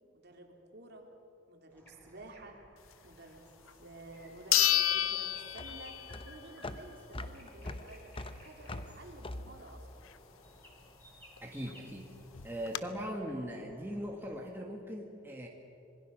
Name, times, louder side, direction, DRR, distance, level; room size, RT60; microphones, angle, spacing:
voice 1, 0.1-1.1 1.5-2.6 3.0-10.1, right 2 dB, 50° right, 2 dB, 2.9 m, -52 dB
sound 1, 1.7-14.4, equal, 10° left, 4.7 m, -58 dB
sound 2, 3.7-3.8 4.5-6.3 6.7-6.8 11.4-11.5 11.7-11.8 12.3-12.8, left 13 dB, 80° left, 0.7 m, -29 dB
sound 3, 4.2-10.7, left 2 dB, 25° left, 0.7 m, -44 dB
voice 2, 11.4-12.1 12.4-15.5, equal, 10° right, 0 dB, 1.6 m, -40 dB
26.0 x 22.0 x 6.3 m, 2.8 s
head